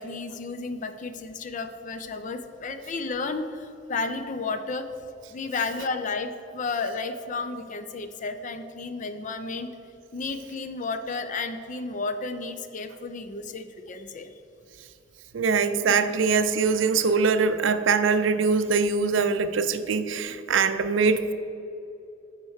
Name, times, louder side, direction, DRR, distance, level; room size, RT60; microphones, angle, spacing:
voice 1, 0.0-4.9 5.3-9.7 10.1-14.3, left 4 dB, 40° left, 9 dB, 0.4 m, -32 dB
voice 2, 15.3-21.3, right 5 dB, 75° right, 11 dB, 0.5 m, -23 dB
8.6 x 4.4 x 6.4 m, 2.8 s
head